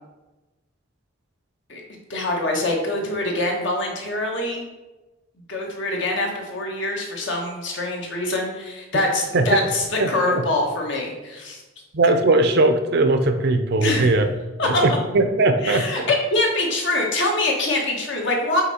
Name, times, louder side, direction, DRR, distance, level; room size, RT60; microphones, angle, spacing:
voice 1, 2.1-4.7 5.5-11.6 13.8-14.0 14.6-15.0 15.6-18.6, left 2 dB, 60° left, 0 dB, 1.3 m, -24 dB
voice 2, 10.0-10.4 11.9-14.3 14.6-15.8, right 2 dB, 50° right, 8 dB, 0.5 m, -19 dB
5.6 x 4.2 x 4.2 m, 1.1 s
head